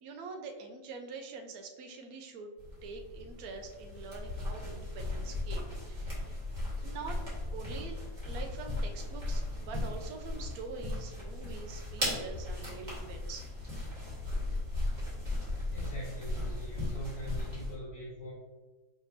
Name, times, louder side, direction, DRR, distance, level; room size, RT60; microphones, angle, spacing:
voice 1, 0.0-2.5 2.8-6.2 6.8-7.2 7.5-8.0 8.2-13.5, right 4 dB, 75° right, 3 dB, 1.1 m, -45 dB
sound 1, 2.6-17.7, left 1 dB, 30° right, 1.7 m, -37 dB
voice 2, 15.7-18.3, equal, 75° left, -7 dB, 2.3 m, -43 dB
4.7 x 3.7 x 2.7 m, 1.2 s
omnidirectional pair, 1.6 m